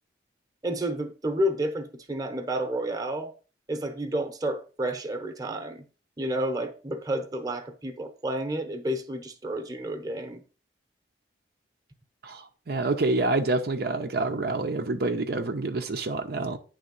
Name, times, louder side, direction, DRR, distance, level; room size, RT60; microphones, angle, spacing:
voice 1, 0.6-3.3 3.7-5.8 6.2-10.4, right 1 dB, 20° right, 1.0 m, -30 dB
voice 2, 12.2-16.6, right 2 dB, 60° right, 0.7 m, -27 dB
9.7 x 3.5 x 5.2 m
head